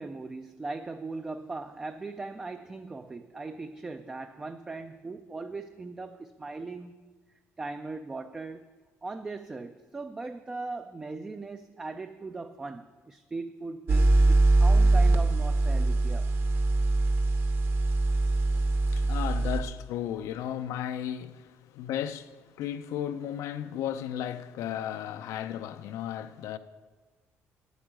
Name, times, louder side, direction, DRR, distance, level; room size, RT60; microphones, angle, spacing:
voice 1, 0.0-7.0 7.6-8.6 9.0-16.3, right 3 dB, 15° right, 0.4 m, -39 dB
sound 1, 13.9-19.6, right 2 dB, 50° right, 1.1 m, -23 dB
voice 2, 18.5-26.6, left 10 dB, 80° left, 0.6 m, -35 dB
9.3 x 8.1 x 8.9 m
cardioid pair, 175°, 5 cm